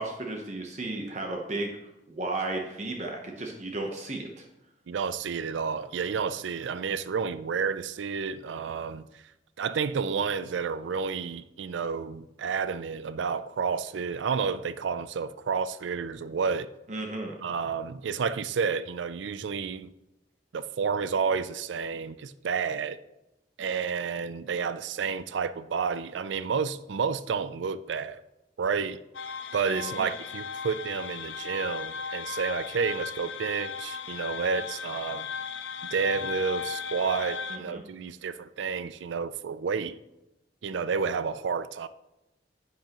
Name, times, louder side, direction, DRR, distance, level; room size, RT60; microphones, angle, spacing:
voice 1, 0.0-1.8 2.1-4.5 16.9-17.4 29.7-30.1 37.5-37.8, right 2 dB, 40° right, 0.9 m, -34 dB
voice 2, 4.9-9.1 9.6-16.7 17.4-19.9 20.5-23.0 23.6-28.2 28.6-29.0 29.5-35.3 35.8-40.0 40.6-41.9, right 5 dB, 80° right, 0.4 m, -30 dB
sound 1, 29.1-37.6, left 6 dB, 90° left, 0.7 m, -36 dB
10.0 x 8.2 x 3.0 m
head